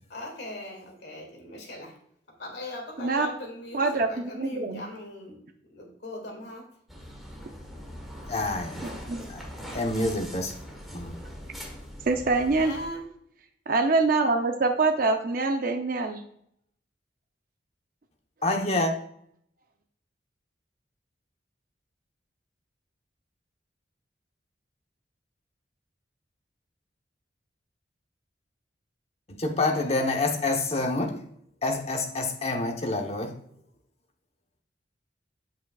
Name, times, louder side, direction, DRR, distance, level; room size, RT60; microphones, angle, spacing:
voice 1, 0.1-1.9 2.4-5.4 5.6-6.6 12.6-13.0, left 1 dB, 65° left, 2.3 m, -39 dB
voice 2, 3.7-4.8 9.1-9.3 12.1-12.7 13.7-16.2, right 3 dB, 50° right, 0.6 m, -24 dB
sound 1, 6.9-12.9, equal, ahead, 1.4 m, -42 dB
voice 3, 8.3-10.5 10.9-11.1 18.4-18.9 29.3-31.2 31.6-33.3, left 2 dB, 35° left, 1.0 m, -28 dB
8.2 x 7.4 x 2.4 m
head